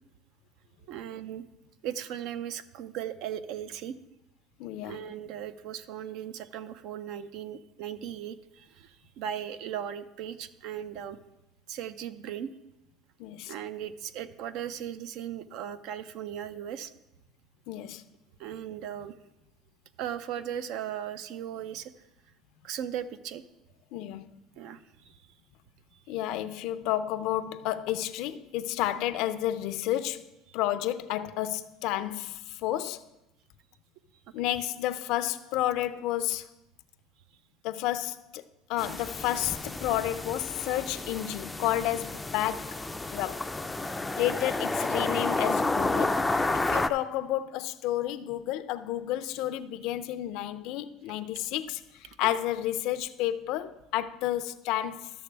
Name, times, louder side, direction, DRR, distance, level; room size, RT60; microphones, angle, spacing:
voice 1, 0.9-1.4 1.8-4.0 4.8-11.2 11.7-12.5 13.5-16.9 18.4-19.1 20.0-21.9 22.6-23.4 24.6-24.8 52.2-52.3, right 9 dB, 70° right, 0.5 m, -37 dB
voice 2, 4.6-5.0 13.2-13.5 17.7-18.0 23.9-24.3 26.1-30.3 30.5-33.0 34.3-36.5 37.6-38.4 38.7-42.8 43.1-43.4 44.2-46.2 46.5-51.8 52.2-55.1, left 13 dB, 70° left, 0.4 m, -31 dB
sound 1, 38.8-46.9, left 2 dB, 10° left, 0.3 m, -31 dB
12.5 x 6.8 x 3.3 m
cardioid pair, 130°, 0 cm